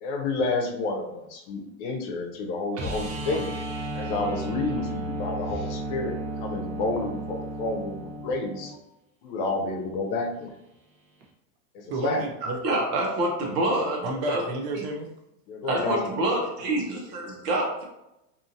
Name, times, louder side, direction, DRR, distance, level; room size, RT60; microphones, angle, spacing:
voice 1, 0.0-3.5 3.9-8.8 9.2-10.5 11.7-12.2 15.5-16.0, left 3 dB, 50° left, 3 dB, 0.8 m, -30 dB
sound 1, 2.7-8.7 11.2-11.3, right 1 dB, 50° right, 0.9 m, -33 dB
voice 2, 11.9-12.6 14.0-15.1, right 1 dB, 35° right, 3 dB, 0.5 m, -31 dB
voice 3, 12.6-14.4 15.6-17.8, right 1 dB, 80° right, -1 dB, 1.1 m, -26 dB
2.7 x 2.6 x 2.6 m, 0.87 s
hypercardioid pair, 120°, 46 cm